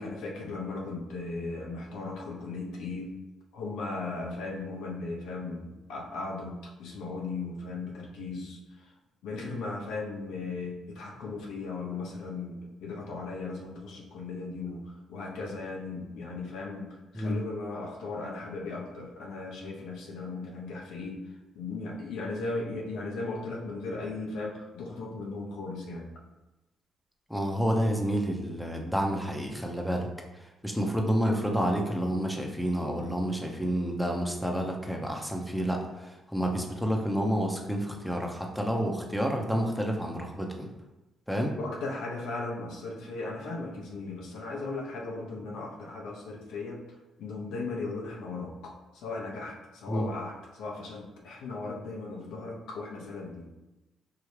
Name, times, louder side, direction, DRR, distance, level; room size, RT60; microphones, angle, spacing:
voice 1, 0.0-3.1 3.5-8.9 9.2-21.2 21.5-26.1 41.6-46.8 47.2-53.5, left 3 dB, 85° left, -1 dB, 0.8 m, -37 dB
voice 2, 27.3-30.1 30.4-40.7 41.3-41.6 49.9-50.1, equal, ahead, 1 dB, 0.7 m, -29 dB
4.8 x 2.7 x 3.2 m, 1.0 s
cardioid pair, 90°, 0 cm